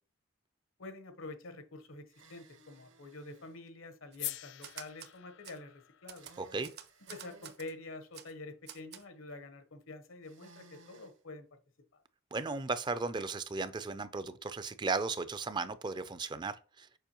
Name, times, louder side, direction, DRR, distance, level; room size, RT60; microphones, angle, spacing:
voice 1, 0.8-2.0 2.3-6.3 7.1-11.6 11.9-12.0, left 2 dB, 80° left, 1.0 m, -47 dB
sound 1, 2.1-3.6 6.1-7.6 10.2-11.2, right 3 dB, 70° right, 1.2 m, -58 dB
Typewriter, 4.1-5.1 5.4-5.6 6.1-7.7 8.1-8.3 8.7-9.0, right 9 dB, 55° right, 0.7 m, -49 dB
sound 2, 4.2-8.4, left 17 dB, 60° left, 0.4 m, -47 dB
voice 2, 6.4-6.7 12.3-16.9, right 4 dB, 20° right, 0.4 m, -36 dB
6.9 x 5.1 x 3.0 m
head